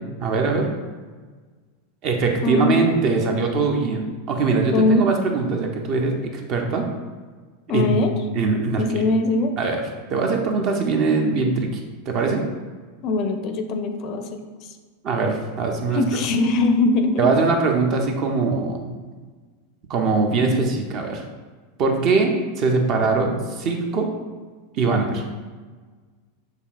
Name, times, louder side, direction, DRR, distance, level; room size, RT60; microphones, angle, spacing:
voice 1, 0.2-0.7 2.0-6.9 7.7-8.0 8.3-9.1 9.6-9.8 10.1-11.7 12.1-12.4 15.0-16.0 17.2-18.9 19.9-21.2 21.8-24.1 24.8-25.2, right 4 dB, 40° right, 3 dB, 0.6 m, -22 dB
voice 2, 2.4-2.8 4.7-5.1 7.7-8.1 8.7-9.5 13.0-14.7 15.9-17.3, left 2 dB, 45° left, 6 dB, 0.4 m, -21 dB
6.6 x 2.7 x 2.5 m, 1.4 s
figure-of-eight pair, 90°, 0 cm